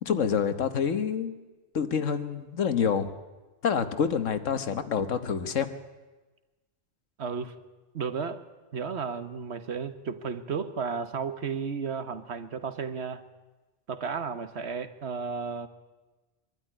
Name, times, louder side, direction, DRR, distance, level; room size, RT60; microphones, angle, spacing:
voice 1, 0.0-1.3 1.7-3.1 3.6-5.7, left 7 dB, 85° left, 10 dB, 1.6 m, -27 dB
voice 2, 7.2-7.5 7.9-8.4 8.7-13.2 13.9-15.7, right 5 dB, 60° right, 11 dB, 1.4 m, -33 dB
23.0 x 12.5 x 10.0 m, 1.2 s
omnidirectional pair, 1.3 m